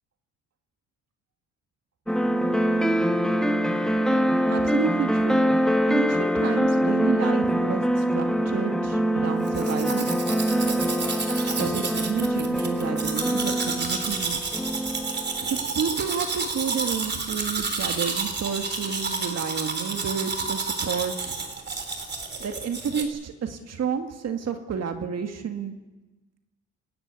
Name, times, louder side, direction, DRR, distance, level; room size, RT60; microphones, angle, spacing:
sound 1, 2.1-15.6, equal, ahead, 1.5 m, -24 dB
voice 1, 4.5-5.4 5.9-10.1 11.6-14.6 15.5-21.4 22.4-25.7, right 6 dB, 55° right, 6 dB, 2.0 m, -30 dB
Domestic sounds home sounds, 9.4-23.0, right 4 dB, 35° right, 3.6 m, -30 dB
26.5 x 13.5 x 9.8 m, 1.2 s
cardioid pair, 90°, 30 cm